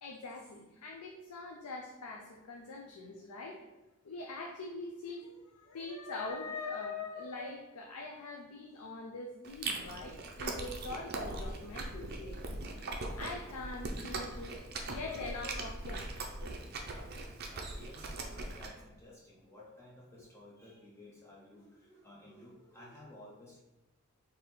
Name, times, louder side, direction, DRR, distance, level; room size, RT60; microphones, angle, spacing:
voice 1, 0.0-3.6 4.0-12.6 13.2-16.1 16.4-16.5 19.6-19.7, left 3 dB, 90° left, 1 dB, 0.5 m, -43 dB
Chewing mastication, 9.4-18.7, right 2 dB, 45° right, 0.5 m, -40 dB
voice 2, 16.7-23.6, left 1 dB, 10° left, -4 dB, 0.5 m, -55 dB
4.1 x 2.7 x 3.6 m, 1.0 s
head